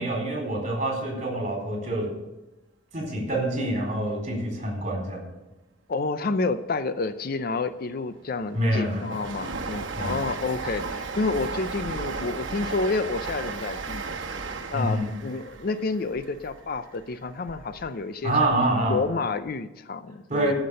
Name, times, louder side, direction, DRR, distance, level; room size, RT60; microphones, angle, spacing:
voice 1, 0.0-2.1 2.9-5.2 8.5-9.1 9.9-10.2 14.7-15.1 18.2-19.0 20.3-20.5, right 1 dB, 35° right, 0 dB, 4.0 m, -26 dB
voice 2, 5.9-14.1 14.7-18.6 18.9-20.5, left 3 dB, 50° left, 12 dB, 0.5 m, -29 dB
Train, 7.7-17.9 18.3-19.2 19.5-19.6, right 4 dB, 70° right, 1.2 m, -35 dB
15.0 x 6.0 x 6.5 m, 1.0 s
head